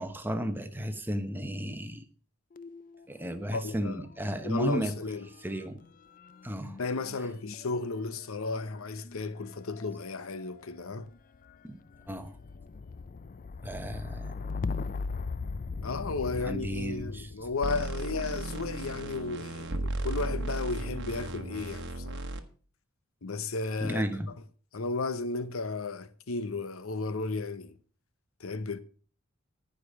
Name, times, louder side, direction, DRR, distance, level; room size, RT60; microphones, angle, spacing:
voice 1, 0.0-2.0 3.1-4.9 5.4-5.8 6.4-6.8 11.6-11.8 12.1-12.4 13.6-14.3 16.4-17.3 23.8-24.3, equal, 10° right, 1.0 m, -33 dB
sound 1, 2.5-3.9 4.1-19.2 19.9-20.5, left 4 dB, 40° left, 0.4 m, -41 dB
voice 2, 3.5-4.0 4.4-5.3 6.8-11.1 15.8-22.3 23.2-24.0 24.7-27.8 28.4-28.8, left 3 dB, 75° left, 0.8 m, -34 dB
sound 2, 17.6-22.4, right 2 dB, 55° right, 1.2 m, -35 dB
14.5 x 5.2 x 6.3 m
head